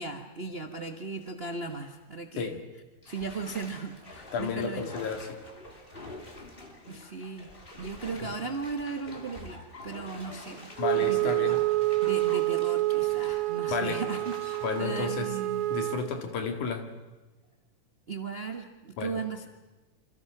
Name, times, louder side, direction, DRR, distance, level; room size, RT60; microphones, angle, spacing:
voice 1, 0.0-2.6 3.1-4.9 5.9-6.1 6.9-7.5 7.8-10.7 11.0-11.6 12.0-15.7 18.1-19.5, right 4 dB, 55° right, 4 dB, 0.6 m, -37 dB
Bathtub (filling or washing), 0.9-1.3 1.7-1.8 3.0-16.1 16.6-16.7, left 1 dB, 20° left, 2.6 m, -47 dB
voice 2, 4.3-5.4 10.8-11.6 13.7-14.0 14.6-15.3 15.7-16.8 19.0-19.2, left 5 dB, 80° left, 5 dB, 3.6 m, -32 dB
Wind instrument woodwind instrument, 10.8-16.1, right 19 dB, 75° right, 2.3 m, -28 dB
28.0 x 26.0 x 6.0 m, 1.1 s
omnidirectional pair, 3.5 m